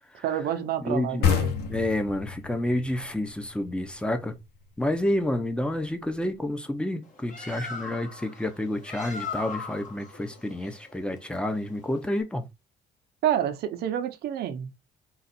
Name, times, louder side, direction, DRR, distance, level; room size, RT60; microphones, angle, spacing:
voice 1, 0.2-1.6 13.2-14.7, right 10 dB, 70° right, 0.8 m, -28 dB
voice 2, 0.8-1.2 1.7-4.4 4.8-12.5, left 1 dB, 5° left, 0.7 m, -29 dB
sound 1, 1.2-4.6, left 7 dB, 75° left, 1.1 m, -29 dB
Bird, 7.0-12.2, left 5 dB, 45° left, 1.5 m, -39 dB
4.0 x 2.5 x 4.1 m
cardioid pair, 110°, 17 cm